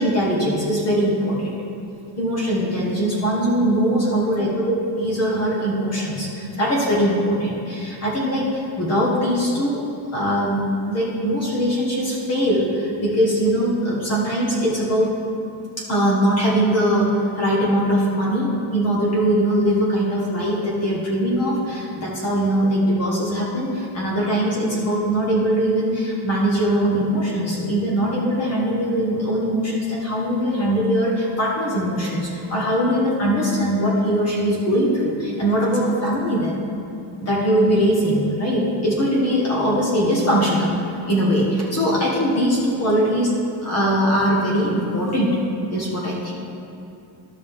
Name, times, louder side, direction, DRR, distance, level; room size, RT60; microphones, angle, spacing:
voice 1, 0.0-1.5 2.2-9.8 10.1-15.1 15.9-17.1 17.3-36.6 37.2-40.8 41.1-43.3 43.6-45.4 45.7-46.3, equal, 30° left, -5 dB, 1.5 m, -21 dB
13.0 x 5.1 x 3.7 m, 2.8 s
cardioid pair, 160°, 50 cm